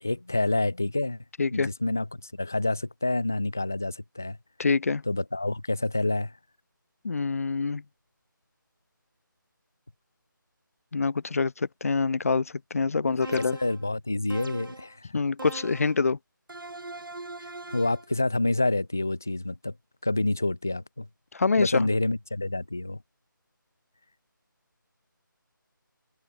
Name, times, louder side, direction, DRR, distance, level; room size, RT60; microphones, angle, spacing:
voice 1, 0.0-1.2 1.5-4.4 5.1-6.4 13.0-15.1 17.4-19.7 20.0-21.1 21.6-23.0, left 2 dB, 10° left, 0.3 m, -28 dB
voice 2, 4.6-5.0 7.0-7.8 10.9-13.6 15.1-16.2 21.3-21.8, left 4 dB, 45° left, 4.5 m, -25 dB
sound 1, 13.2-13.9 14.3-14.9 15.4-16.0 16.5-18.1, right 2 dB, 75° right, 5.7 m, -41 dB
figure-of-eight pair, 170°, 11 cm